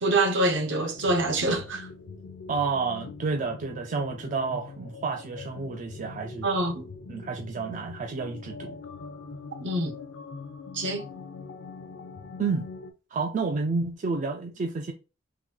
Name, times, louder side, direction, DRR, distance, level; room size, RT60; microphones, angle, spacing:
voice 1, 0.0-1.9 6.4-6.9 9.6-10.0 10.7-11.1, right 2 dB, 65° right, 0.8 m, -25 dB
sound 1, 1.0-12.9, left 4 dB, 75° left, 0.5 m, -43 dB
voice 2, 2.5-6.5 7.1-8.8 12.4-12.7 13.1-14.9, right 4 dB, 40° right, 0.3 m, -30 dB
3.8 x 2.3 x 2.9 m
head